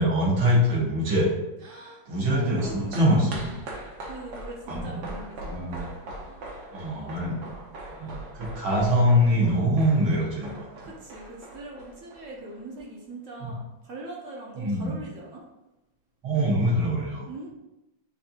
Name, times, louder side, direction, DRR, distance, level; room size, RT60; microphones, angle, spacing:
voice 1, 0.0-1.3 2.1-3.5 4.7-5.1 5.4-5.9 6.7-7.4 7.9-10.7 13.4-13.5 14.6-15.0 16.2-17.5, equal, 85° right, -5 dB, 2.2 m, -24 dB
voice 2, 1.6-2.0 2.3-3.6 4.0-5.8 6.2-6.5 6.9-7.5 10.8-15.4 17.3-17.5, right 2 dB, 50° right, -2 dB, 1.0 m, -41 dB
sound 1, 2.2-12.8 13.1-13.2, right 2 dB, 70° right, 1.5 m, -41 dB
6.6 x 2.6 x 2.9 m, 0.93 s
omnidirectional pair, 2.1 m